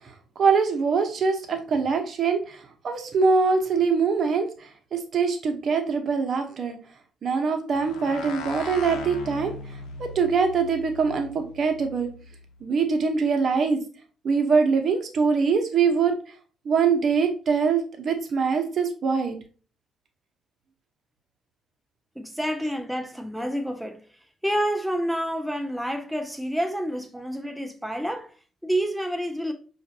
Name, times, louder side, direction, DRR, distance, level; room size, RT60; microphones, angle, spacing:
voice 1, 0.4-2.4 2.8-4.5 4.9-6.8 7.2-9.5 10.0-12.1 12.6-13.8 14.2-16.1 16.7-19.3, right 5 dB, 55° right, 0.9 m, -23 dB
sound 1, 7.7-12.4, left 4 dB, 85° left, 0.7 m, -39 dB
voice 2, 22.2-24.0 24.4-28.3 28.6-29.5, equal, ahead, 0.5 m, -28 dB
5.9 x 2.5 x 2.7 m
cardioid pair, 90°, 0 cm